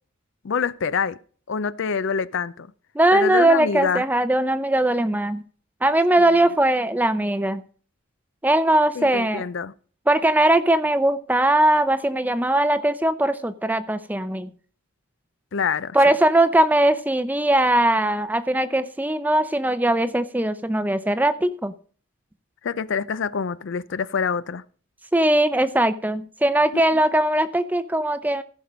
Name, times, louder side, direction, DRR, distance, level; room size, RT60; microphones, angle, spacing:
voice 1, 0.4-1.2 1.5-2.7 3.1-4.0 6.2-6.3 9.0-9.7 15.5-16.1 22.6-24.6, left 6 dB, 60° left, 0.4 m, -26 dB
voice 2, 2.9-5.4 5.8-7.6 8.4-9.4 10.1-14.5 15.9-21.7 25.1-28.4, right 1 dB, 10° right, 0.6 m, -20 dB
15.0 x 5.9 x 5.2 m
head